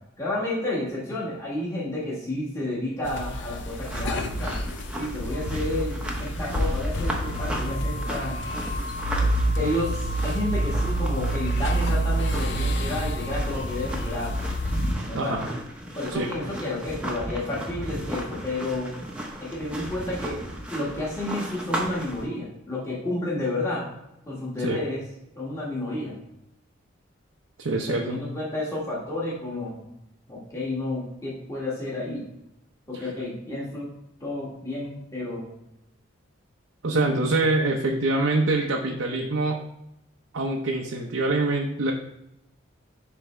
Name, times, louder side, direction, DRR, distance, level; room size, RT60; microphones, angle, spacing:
voice 1, 0.2-4.6 5.0-8.4 9.2-9.3 9.6-14.4 15.1-15.4 15.9-18.9 19.4-20.4 20.7-24.0 24.2-25.0 25.3-26.2 27.7-29.8 30.3-32.2 32.9-33.9 34.2-35.5, left 1 dB, 15° left, -6 dB, 1.5 m, -31 dB
sound 1, 3.0-14.9, right 1 dB, 60° left, 0.5 m, -28 dB
sound 2, 3.7-22.3, equal, 5° right, 0.8 m, -35 dB
voice 2, 15.1-15.5 16.1-16.3 24.6-24.8 27.6-28.2 36.8-39.6 40.3-41.9, right 2 dB, 80° right, 0 dB, 0.7 m, -25 dB
10.5 x 3.5 x 3.2 m, 0.86 s
head